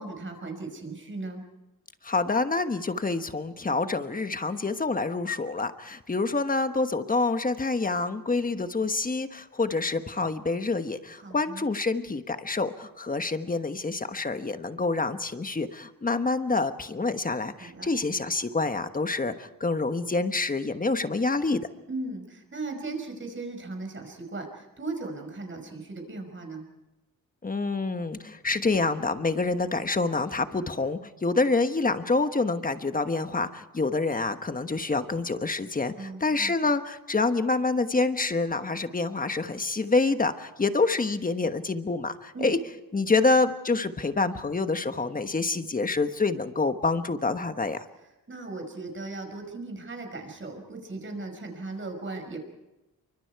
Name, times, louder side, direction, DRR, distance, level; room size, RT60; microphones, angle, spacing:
voice 1, 0.0-1.4 11.2-11.6 17.6-17.9 21.9-26.6 36.0-36.5 42.3-42.5 48.3-52.4, right 3 dB, 35° right, 4 dB, 5.5 m, -37 dB
voice 2, 2.0-21.6 27.4-42.6 42.9-47.9, left 3 dB, 25° left, 9 dB, 1.2 m, -27 dB
28.5 x 24.5 x 4.7 m, 0.99 s
wide cardioid pair, 125°, 33 cm